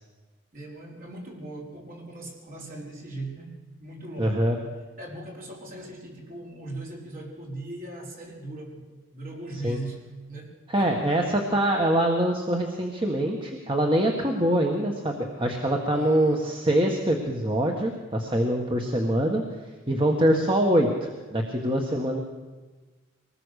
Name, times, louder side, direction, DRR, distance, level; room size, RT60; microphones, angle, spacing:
voice 1, 0.5-3.5 3.8-4.5 5.0-8.9 9.1-10.9 15.9-16.5, right 2 dB, 45° right, -2 dB, 5.1 m, -39 dB
voice 2, 4.2-4.6 9.6-9.8 10.7-19.4 19.9-22.2, right 1 dB, 25° right, 1 dB, 1.7 m, -24 dB
24.5 x 19.5 x 6.6 m, 1.3 s
head